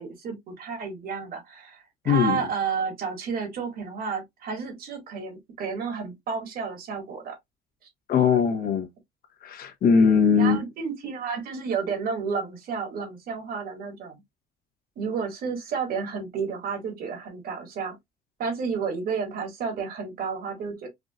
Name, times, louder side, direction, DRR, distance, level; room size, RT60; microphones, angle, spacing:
voice 1, 0.0-7.4 10.4-14.2 15.0-18.0 18.4-20.9, right 5 dB, 60° right, 2.1 m, -31 dB
voice 2, 2.0-2.4 8.1-8.9 9.4-10.6, left 6 dB, 60° left, 1.3 m, -20 dB
5.0 x 2.6 x 2.4 m
cardioid pair, 110°, 17 cm